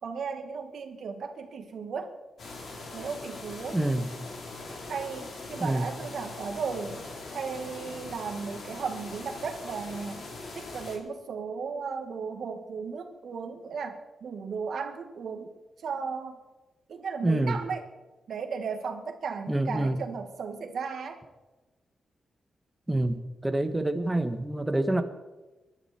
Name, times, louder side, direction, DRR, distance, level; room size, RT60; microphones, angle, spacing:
voice 1, 0.0-2.1 2.9-3.8 4.8-7.0 7.3-10.3 10.5-15.6 15.8-16.4 16.9-17.8 18.3-21.2, right 5 dB, 70° right, 5 dB, 2.0 m, -35 dB
sound 1, 2.4-11.0, left 3 dB, 60° left, 4.2 m, -41 dB
voice 2, 3.7-4.1 5.6-5.9 17.2-17.6 19.5-20.0 22.9-25.0, right 1 dB, 10° right, 8 dB, 1.4 m, -27 dB
23.5 x 12.0 x 4.5 m, 1.1 s
wide cardioid pair, 125°, 0 cm